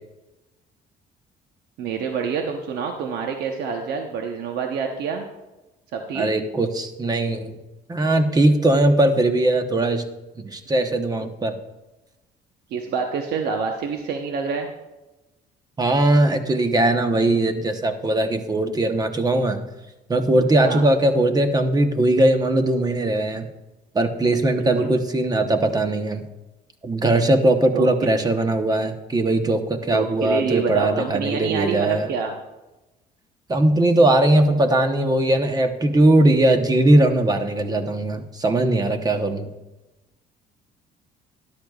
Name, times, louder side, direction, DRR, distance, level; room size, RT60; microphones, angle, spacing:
voice 1, 1.8-5.2 5.9-6.3 12.7-14.7 20.6-20.8 24.5-24.9 27.7-28.1 29.9-32.3, right 6 dB, 75° right, 3 dB, 1.0 m, -27 dB
voice 2, 6.1-7.6 7.9-10.0 10.4-11.5 15.8-19.6 20.1-23.5 23.9-26.2 26.8-32.1 33.5-39.5, right 1 dB, 20° right, 7 dB, 1.0 m, -20 dB
13.0 x 11.0 x 2.4 m, 1.1 s
cardioid pair, 110°, 17 cm